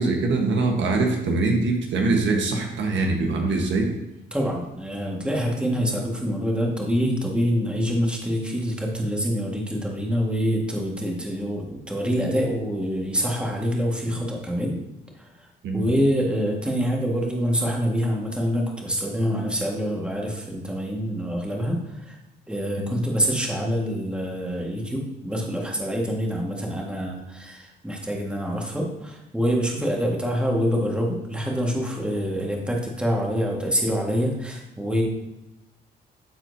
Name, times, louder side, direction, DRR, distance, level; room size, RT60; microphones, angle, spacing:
voice 1, 0.0-3.9 15.6-15.9 22.8-23.0, right 3 dB, 70° right, 2 dB, 1.3 m, -23 dB
voice 2, 4.3-14.8 15.2-15.5 15.7-22.2 22.5-35.0, equal, 5° right, -1 dB, 1.7 m, -26 dB
13.0 x 4.3 x 2.7 m, 0.93 s
cardioid pair, 90°, 20 cm